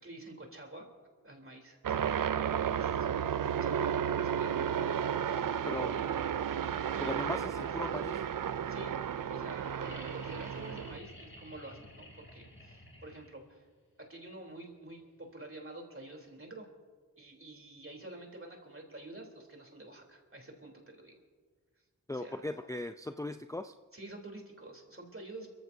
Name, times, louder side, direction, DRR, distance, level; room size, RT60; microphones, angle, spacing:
voice 1, 0.0-0.9 1.2-2.2 2.7-6.1 6.8-7.7 8.7-13.7 14.0-16.7 17.2-21.2 22.1-22.5 23.9-25.5, right 2 dB, 40° right, 1 dB, 3.6 m, -48 dB
sound 1, 1.8-11.0, right 8 dB, 80° right, 0.5 m, -33 dB
voice 2, 5.7-6.0 7.0-8.2 22.1-23.7, left 1 dB, 10° left, 8 dB, 0.5 m, -38 dB
sound 2, 9.8-13.6 15.3-15.4, left 1 dB, 35° left, 3.0 m, -52 dB
29.5 x 15.0 x 2.8 m, 1.5 s
wide cardioid pair, 40°, 32 cm